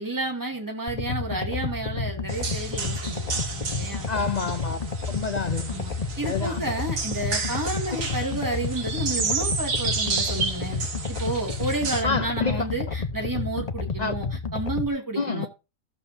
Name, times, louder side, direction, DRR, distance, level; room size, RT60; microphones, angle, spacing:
voice 1, 0.0-4.1 5.7-10.8 11.1-14.3 14.5-15.5, right 2 dB, 10° right, 2.4 m, -31 dB
sound 1, 0.9-14.9, left 4 dB, 35° left, 0.7 m, -31 dB
sound 2, 2.3-12.0, right 4 dB, 55° right, 1.9 m, -32 dB
voice 2, 4.1-4.8 5.1-5.8 6.2-6.6 12.0-12.7 14.0-14.2 15.2-15.5, left 4 dB, 90° left, 0.3 m, -28 dB
14.5 x 7.4 x 2.7 m
omnidirectional pair, 1.7 m